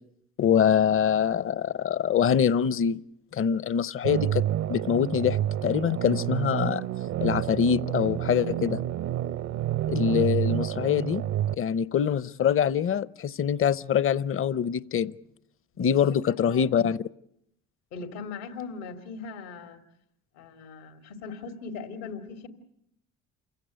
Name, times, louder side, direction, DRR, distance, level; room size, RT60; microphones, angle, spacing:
voice 1, 0.4-3.0 3.3-4.4 4.7-6.8 7.2-8.8 9.9-11.2 11.5-15.1 15.8-17.0, left 8 dB, 40° left, 0.8 m, -24 dB
sound 1, 4.0-11.6, right 12 dB, 55° right, 0.8 m, -29 dB
voice 2, 15.7-16.7 17.9-19.8 20.3-22.5, left 5 dB, 85° left, 2.5 m, -40 dB
28.0 x 16.5 x 8.2 m
hypercardioid pair, 60°, 33 cm